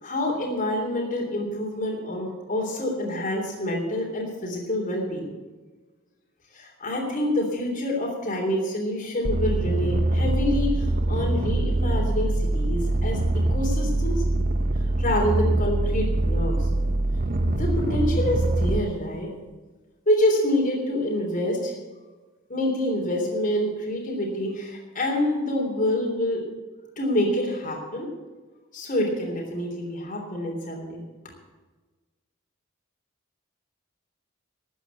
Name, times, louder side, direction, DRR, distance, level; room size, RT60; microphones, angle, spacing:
voice 1, 0.0-5.3 6.5-13.2 13.5-14.2 15.0-16.7 17.4-19.3 20.1-21.8 22.5-26.4 27.0-28.1 28.7-31.0, left 1 dB, 40° left, -1 dB, 3.3 m, -27 dB
sound 1, 9.2-18.8, right 1 dB, 45° right, 0.9 m, -24 dB
13.0 x 9.0 x 8.2 m, 1.3 s
head